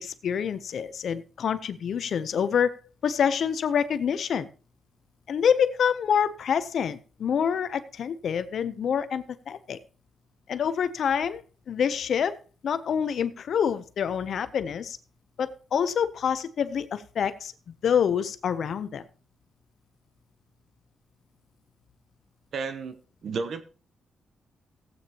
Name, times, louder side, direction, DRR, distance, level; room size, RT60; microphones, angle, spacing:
voice 1, 0.0-2.7 3.0-4.5 5.3-9.8 10.5-12.3 12.6-15.0 15.4-17.5 17.8-19.0, left 7 dB, 65° left, 12 dB, 0.6 m, -26 dB
voice 2, 22.5-23.0 23.2-23.6, right 4 dB, 65° right, 10 dB, 1.0 m, -31 dB
16.0 x 8.6 x 2.9 m, 0.37 s
cardioid pair, 120°, 0 cm